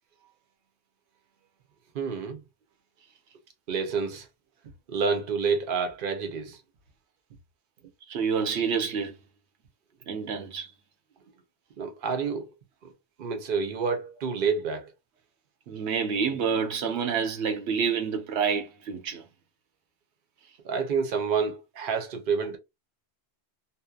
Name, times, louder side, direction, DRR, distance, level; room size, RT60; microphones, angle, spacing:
voice 1, 1.9-2.4 3.7-4.3 4.9-6.6 11.8-12.5 12.8-12.9 13.2-14.9 20.6-22.6, right 5 dB, 55° right, 0.9 m, -28 dB
voice 2, 8.1-9.2 10.1-10.7 15.7-19.2, right 6 dB, 85° right, 1.0 m, -28 dB
2.7 x 2.1 x 2.2 m
omnidirectional pair, 1.1 m